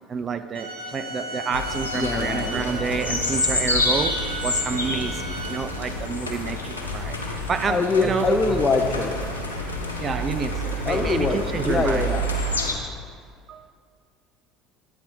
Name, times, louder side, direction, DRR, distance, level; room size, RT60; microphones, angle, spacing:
voice 1, 0.1-8.6 10.0-12.1 13.5-13.7, right 6 dB, 35° right, 10 dB, 0.3 m, -29 dB
sound 1, 0.5-5.6, right 1 dB, 70° right, 1.0 m, -35 dB
sound 2, 1.5-12.7, left 1 dB, 85° left, 0.6 m, -28 dB
voice 2, 2.0-2.6 7.7-9.1 10.9-12.2, left 4 dB, 25° left, 3 dB, 0.5 m, -24 dB
8.7 x 4.0 x 4.7 m, 2.1 s
figure-of-eight pair, 60°, 0 cm